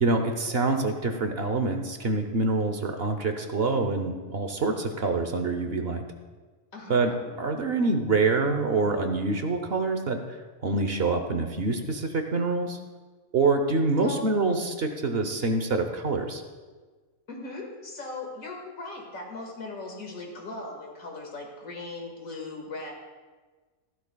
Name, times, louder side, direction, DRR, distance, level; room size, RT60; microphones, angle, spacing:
voice 1, 0.0-6.0 6.9-7.1 7.4-12.8 13.3-16.4, right 3 dB, 50° right, 6 dB, 1.0 m, -26 dB
voice 2, 6.7-7.2 14.0-14.3 17.3-22.9, left 3 dB, 85° left, 0 dB, 2.4 m, -38 dB
14.5 x 12.5 x 2.3 m, 1.4 s
omnidirectional pair, 1.4 m